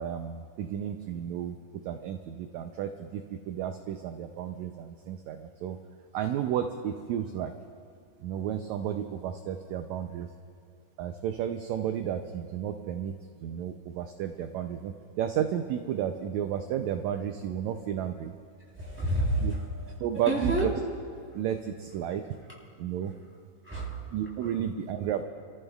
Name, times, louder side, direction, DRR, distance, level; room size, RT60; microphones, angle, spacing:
voice 1, 0.0-1.6 1.9-5.8 6.1-7.5 8.2-10.3 11.0-13.1 13.4-18.3 19.4-19.5 20.0-20.7 21.3-22.2 22.8-23.1 24.1-25.2, right 9 dB, 75° right, 6 dB, 1.7 m, -32 dB
voice 2, 18.7-19.9 20.2-20.7 23.6-24.1, right 1 dB, 5° right, -5 dB, 3.2 m, -29 dB
29.0 x 14.5 x 2.4 m, 2.4 s
omnidirectional pair, 3.7 m